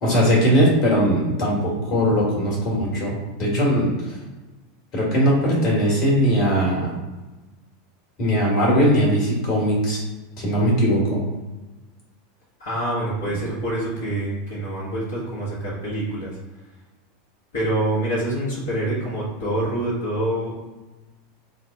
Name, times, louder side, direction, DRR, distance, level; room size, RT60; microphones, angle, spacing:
voice 1, 0.0-3.9 4.9-6.9 8.2-10.0 10.4-11.2, equal, 45° left, -4 dB, 1.5 m, -20 dB
voice 2, 12.6-16.3 17.5-20.5, right 1 dB, 70° left, -9 dB, 1.2 m, -26 dB
3.8 x 2.1 x 3.6 m, 1.2 s
figure-of-eight pair, 85°, 0 cm